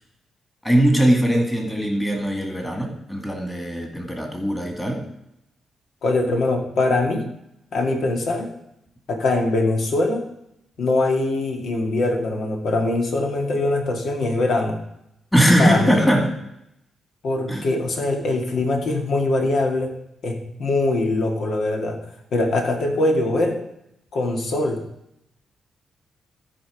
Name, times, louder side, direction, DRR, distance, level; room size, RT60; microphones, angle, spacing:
voice 1, 0.6-5.0 15.3-16.3 17.5-17.6, equal, 10° left, 2 dB, 2.3 m, -20 dB
voice 2, 6.0-7.3 7.7-8.5 9.1-10.2 10.8-14.8 15.6-16.0 17.2-19.9 20.2-22.0 22.3-23.6 24.1-24.8, left 2 dB, 65° left, 3 dB, 2.0 m, -22 dB
13.5 x 5.3 x 5.2 m, 0.81 s
cardioid pair, 110°, 0 cm